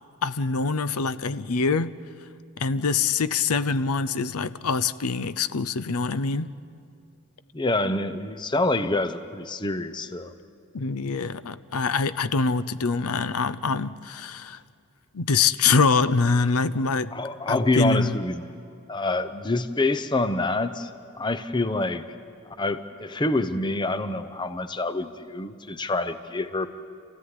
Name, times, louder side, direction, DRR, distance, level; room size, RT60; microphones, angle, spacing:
voice 1, 0.2-1.9 2.6-6.5 10.7-14.6 15.1-17.1 17.5-18.2, left 4 dB, 80° left, 0.7 m, -24 dB
voice 2, 7.5-10.3 17.1-18.4 18.9-20.9 21.2-22.0 22.5-26.7, left 2 dB, 20° left, 0.7 m, -26 dB
28.5 x 15.5 x 9.7 m
head